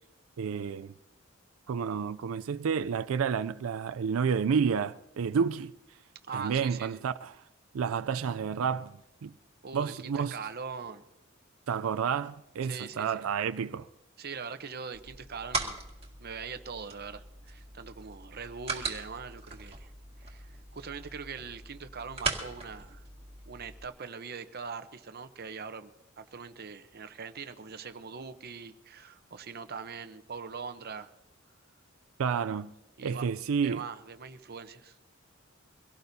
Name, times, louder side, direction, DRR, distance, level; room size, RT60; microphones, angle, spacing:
voice 1, 0.4-0.9 1.7-5.7 6.3-7.3 7.7-9.3 9.7-10.4 11.7-13.9 32.2-32.7 33.0-33.8, right 6 dB, 90° right, 0.4 m, -30 dB
voice 2, 6.3-6.9 9.6-11.0 12.6-13.2 14.2-15.8 16.2-19.9 20.2-23.0 23.5-25.9 26.2-31.1 33.0-33.3 33.6-35.0, right 5 dB, 50° right, 0.8 m, -42 dB
sound 1, 14.9-23.8, right 4 dB, 30° right, 2.0 m, -39 dB
24.0 x 17.5 x 2.7 m
head